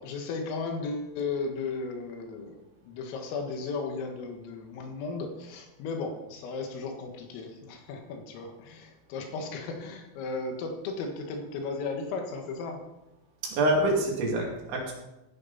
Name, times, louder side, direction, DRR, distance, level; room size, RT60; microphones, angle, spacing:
voice 1, 0.0-12.8, left 4 dB, 80° left, 3 dB, 4.3 m, -35 dB
voice 2, 13.4-14.9, right 1 dB, 65° right, -1 dB, 4.8 m, -26 dB
15.5 x 11.0 x 4.2 m, 0.95 s
omnidirectional pair, 5.8 m